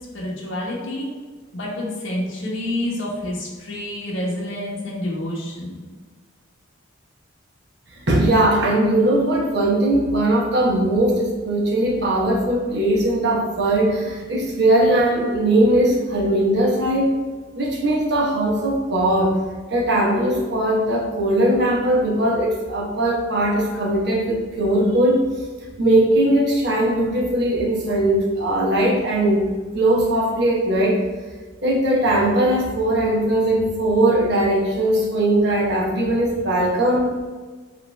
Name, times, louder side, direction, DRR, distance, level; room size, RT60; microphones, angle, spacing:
voice 1, 0.1-1.1 1.5-5.8, left 1 dB, 75° left, -4 dB, 1.3 m, -28 dB
voice 2, 8.1-17.1 17.5-19.4 19.7-25.2 25.8-29.4 29.7-31.0 31.6-37.1, right 1 dB, 55° right, -2 dB, 0.9 m, -19 dB
4.9 x 3.1 x 3.2 m, 1.4 s
head